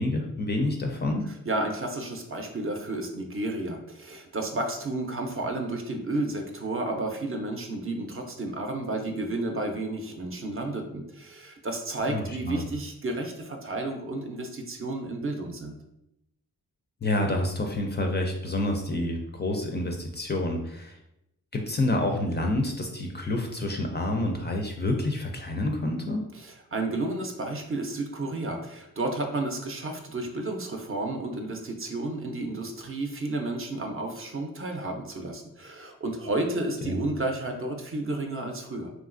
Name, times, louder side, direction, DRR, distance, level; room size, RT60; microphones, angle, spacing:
voice 1, 0.0-1.3 12.1-12.6 17.0-21.0 21.5-26.2 36.8-37.0, left 1 dB, 30° left, 2 dB, 0.4 m, -28 dB
voice 2, 1.4-15.8 26.3-38.9, right 2 dB, 35° right, 3 dB, 0.5 m, -32 dB
3.0 x 2.4 x 2.4 m, 0.83 s
cardioid pair, 60°, 36 cm